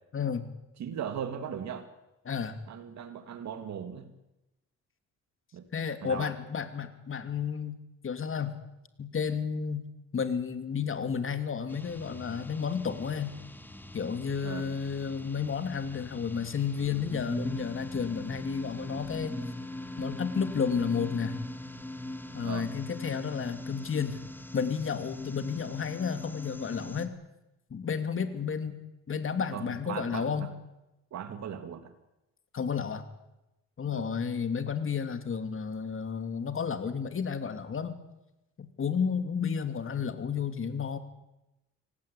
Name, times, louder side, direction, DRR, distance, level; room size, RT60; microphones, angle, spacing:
voice 1, 0.1-0.5 2.3-2.6 5.7-8.6 9.0-9.8 10.1-13.3 13.9-19.4 20.0-21.3 22.3-24.2 24.5-27.1 27.7-28.8 29.1-30.5 32.5-33.0 33.8-38.0 38.6-41.0, left 6 dB, 45° left, 9 dB, 2.9 m, -32 dB
voice 2, 0.8-1.9 2.7-4.1 5.5-5.7 6.0-6.3 14.4-14.8 22.4-22.7 29.5-30.5 31.1-31.9 33.9-34.1, right 8 dB, 65° right, 8 dB, 2.3 m, -38 dB
sound 1, 11.7-27.1, left 1 dB, 5° left, 2.4 m, -41 dB
26.0 x 17.5 x 8.6 m, 0.95 s
cardioid pair, 90°, 30 cm